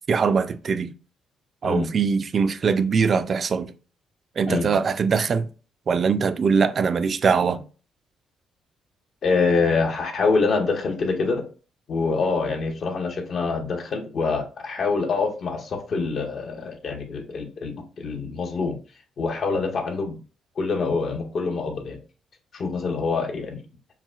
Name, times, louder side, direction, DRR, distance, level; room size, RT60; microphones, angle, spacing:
voice 1, 0.1-0.9 1.6-3.7 4.4-5.5 5.9-7.6, right 5 dB, 45° right, 0.3 m, -22 dB
voice 2, 9.2-11.4 11.9-18.8 19.2-20.2 20.6-22.0 22.5-23.6, left 4 dB, 55° left, 0.8 m, -25 dB
5.6 x 2.1 x 2.3 m
cardioid pair, 90°, 0 cm